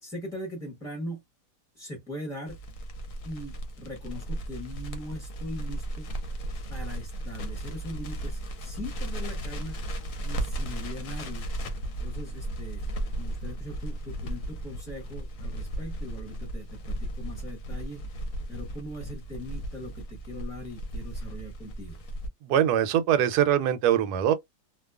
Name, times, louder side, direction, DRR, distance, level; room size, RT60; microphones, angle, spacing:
voice 1, 0.0-1.2 1.7-2.6 3.2-6.1 6.7-9.8 10.2-11.5 12.0-12.9 13.2-18.2 18.5-22.0, left 1 dB, 5° left, 0.7 m, -40 dB
Crackle, 2.5-22.3, right 1 dB, 65° left, 0.9 m, -35 dB
voice 2, 22.4-24.3, right 10 dB, 75° right, 1.1 m, -22 dB
2.7 x 2.3 x 2.3 m
omnidirectional pair, 1.8 m